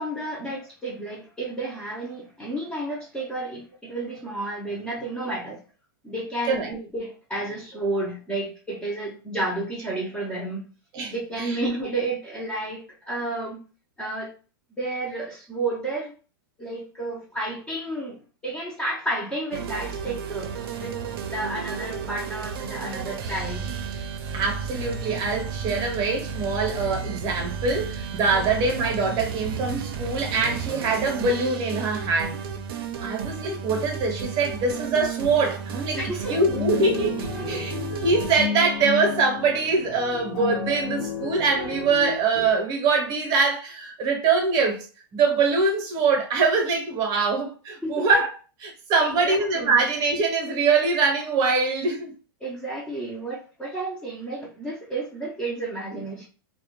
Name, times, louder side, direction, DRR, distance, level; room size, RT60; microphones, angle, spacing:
voice 1, 0.0-5.6 6.0-10.6 11.1-13.6 14.0-14.3 14.8-16.1 16.6-20.5 20.8-20.9 21.3-23.6 28.3-28.7 36.0-36.4 37.3-37.7 47.8-48.1 49.0-49.8 52.4-56.3, right 2 dB, 5° left, 0.4 m, -31 dB
voice 2, 10.9-11.6 24.3-32.4 33.0-36.0 36.3-37.8 38.0-44.9 45.1-48.3 48.6-52.1, right 4 dB, 30° right, 0.7 m, -23 dB
sound 1, 19.5-38.5, right 6 dB, 70° right, 0.4 m, -33 dB
sound 2, 36.3-42.5, left 8 dB, 65° left, 0.6 m, -32 dB
2.1 x 2.0 x 2.9 m
supercardioid pair, 150°, 12 cm